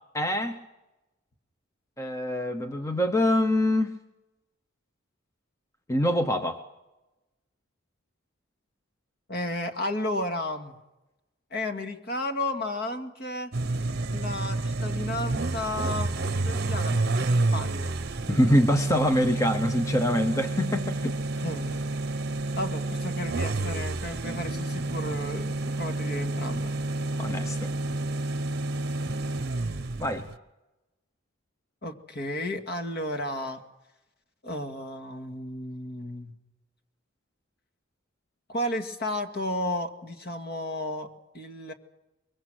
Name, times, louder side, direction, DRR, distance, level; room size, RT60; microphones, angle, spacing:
voice 1, 0.1-0.6 2.0-3.9 5.9-6.6 18.3-21.2 27.2-27.7 30.0-30.2, left 1 dB, 15° left, 6 dB, 1.0 m, -25 dB
voice 2, 9.3-10.7 11.5-13.5 14.1-16.2 16.4-18.0 21.4-21.9 22.6-26.7 31.8-33.6 34.4-36.4 38.5-41.1 41.3-41.7, left 1 dB, 50° left, 5 dB, 2.1 m, -33 dB
sound 1, 13.5-30.3, right 2 dB, 50° right, 0.9 m, -29 dB
23.5 x 23.0 x 6.3 m, 0.98 s
head